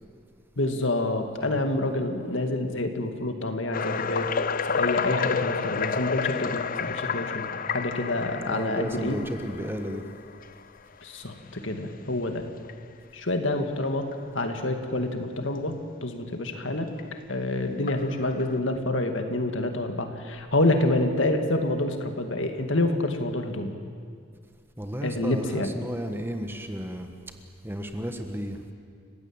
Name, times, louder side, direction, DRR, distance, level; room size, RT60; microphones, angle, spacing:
voice 1, 0.6-4.3 4.8-7.5 7.7-9.2 11.0-12.4 13.1-14.1 14.3-16.9 17.3-23.7 25.0-25.7, left 2 dB, 65° left, 5 dB, 2.2 m, -27 dB
sound 1, 3.7-10.6 11.2-11.4 12.0-12.1 12.6-12.7 14.1-14.2 17.0-17.1 17.9-18.6, left 6 dB, 40° left, 0.6 m, -30 dB
voice 2, 8.5-10.1 24.8-27.1 27.6-28.6, equal, 10° right, 6 dB, 1.4 m, -33 dB
30.0 x 16.0 x 8.9 m, 2.2 s
head